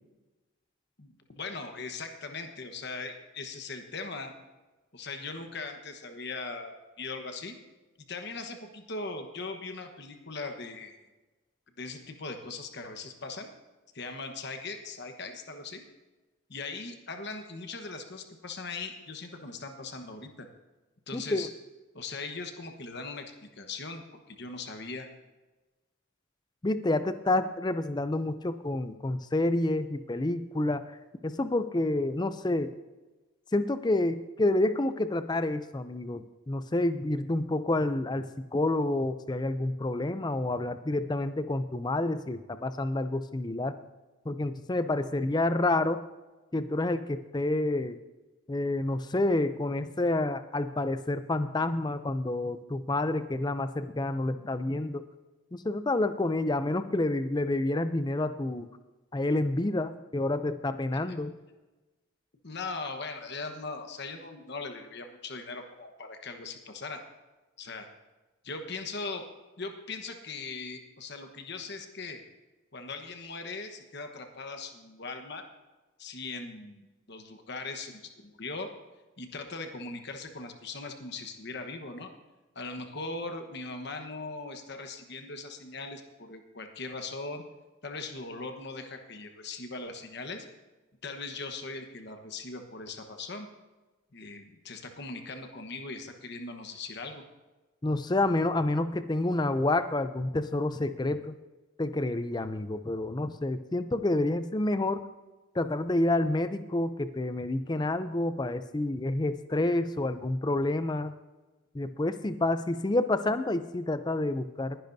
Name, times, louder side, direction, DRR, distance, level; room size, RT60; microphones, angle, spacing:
voice 1, 1.0-4.3 4.9-7.6 8.1-11.0 11.8-13.5 13.9-15.8 16.5-20.5 21.1-21.5 21.9-24.0 24.3-25.1 62.4-67.0 67.6-67.9 68.4-69.2 69.6-72.2 72.7-75.4 76.0-78.7 79.2-82.1 82.5-87.4 87.8-90.5 91.0-93.5 94.1-97.2, left 3 dB, 50° left, 6 dB, 1.2 m, -39 dB
voice 2, 21.1-21.5 26.6-30.8 31.2-32.7 33.5-43.8 44.3-46.0 46.5-48.0 48.5-55.0 55.5-58.7 59.1-61.3 97.8-101.4 101.8-105.0 105.5-111.1 111.7-114.8, left 2 dB, 20° left, 12 dB, 0.4 m, -29 dB
20.5 x 10.5 x 2.7 m, 1.2 s
head